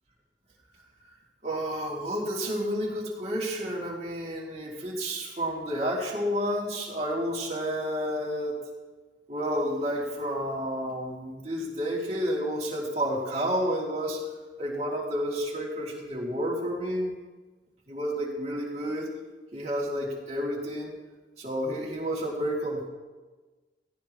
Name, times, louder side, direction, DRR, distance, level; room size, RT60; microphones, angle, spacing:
voice 1, 1.4-8.6 9.3-14.2 14.6-17.1 17.9-19.1 19.5-21.0 21.4-22.9, equal, 35° right, -4 dB, 3.2 m, -30 dB
17.5 x 16.5 x 3.3 m, 1.3 s
head